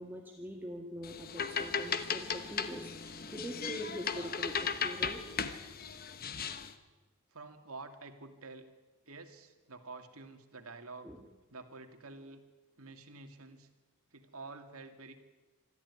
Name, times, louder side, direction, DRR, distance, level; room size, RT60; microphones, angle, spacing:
voice 1, 0.0-5.2 11.0-11.3, equal, 10° right, 1 dB, 1.8 m, -43 dB
sound 1, 1.0-6.7, left 6 dB, 40° left, 1.1 m, -37 dB
voice 2, 7.3-8.7 9.1-11.1 11.5-12.4 12.8-13.7 14.1-15.2, right 3 dB, 80° right, 6 dB, 2.4 m, -49 dB
25.5 x 13.5 x 9.7 m, 1.2 s
head